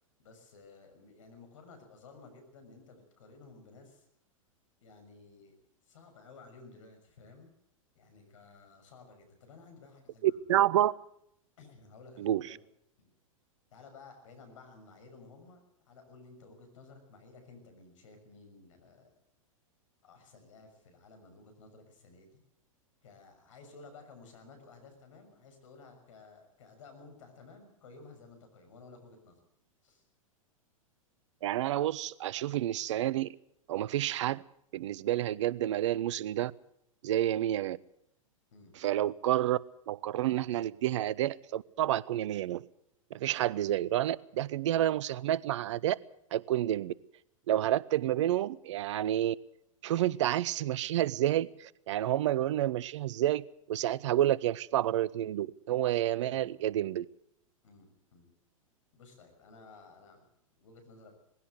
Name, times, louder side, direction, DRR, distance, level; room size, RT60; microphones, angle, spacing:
voice 1, 0.2-4.1 4.8-5.6 5.8-7.5 7.9-10.4 11.6-12.6 13.0-13.1 13.7-19.2 20.0-22.4 23.0-29.4 29.8-30.0 38.5-38.7 56.2-56.7 57.6-58.3 58.9-60.2 60.6-61.1, left 3 dB, 65° left, 6.4 m, -55 dB
voice 2, 10.2-10.9 12.2-12.4 31.4-33.3 33.7-34.4 34.7-36.5 37.0-37.8 38.8-39.6 39.9-42.6 43.1-46.0 46.3-46.9 47.5-49.4 49.8-57.1, right 13 dB, 55° right, 0.7 m, -29 dB
19.5 x 16.5 x 8.0 m
figure-of-eight pair, 100°, 18 cm